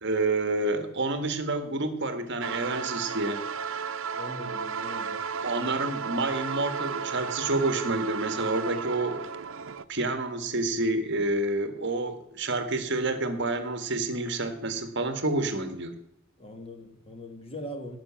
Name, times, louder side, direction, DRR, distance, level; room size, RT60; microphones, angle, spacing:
voice 1, 0.0-3.5 5.4-9.2 9.9-16.0, right 2 dB, 55° right, 1.5 m, -28 dB
sound 1, 2.4-9.8, right 6 dB, 75° right, 0.7 m, -34 dB
voice 2, 4.1-5.3 16.4-18.0, left 1 dB, 25° left, 1.7 m, -41 dB
17.5 x 5.9 x 7.4 m
head